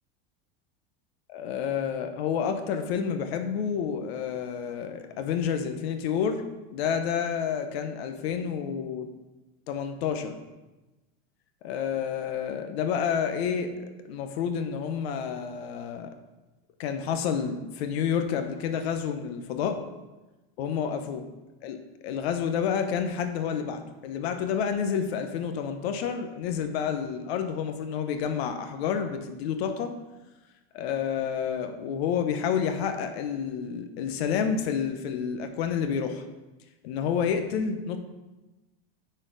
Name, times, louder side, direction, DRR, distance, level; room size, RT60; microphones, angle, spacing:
voice 1, 1.3-6.4 6.7-9.1 9.7-10.4 11.6-16.1 16.8-19.8 20.6-21.2 21.6-21.8 22.0-29.9 30.7-36.2 36.8-38.0, left 7 dB, 80° left, 7 dB, 1.0 m, -29 dB
10.0 x 4.4 x 4.0 m, 1.1 s
supercardioid pair, 130°, 31 cm